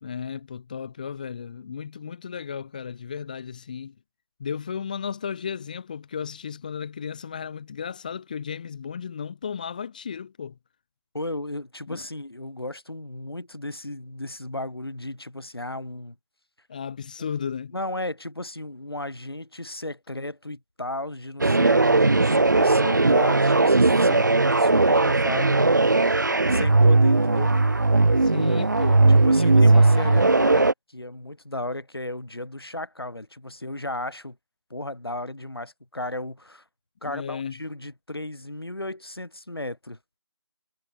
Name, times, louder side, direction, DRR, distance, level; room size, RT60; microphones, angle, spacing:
voice 1, 0.0-3.9 4.4-10.5 11.9-12.0 16.7-17.7 28.2-29.1 29.4-30.1 37.0-37.5, left 7 dB, 20° left, 4.3 m, -34 dB
voice 2, 11.1-16.2 17.2-17.3 17.7-24.3 24.6-25.7 26.5-27.6 29.1-34.4 34.7-36.6 37.0-40.0, left 1 dB, 70° left, 6.4 m, -34 dB
sound 1, 21.4-30.7, right 2 dB, 50° right, 1.7 m, -18 dB
figure-of-eight pair, 165°, 13 cm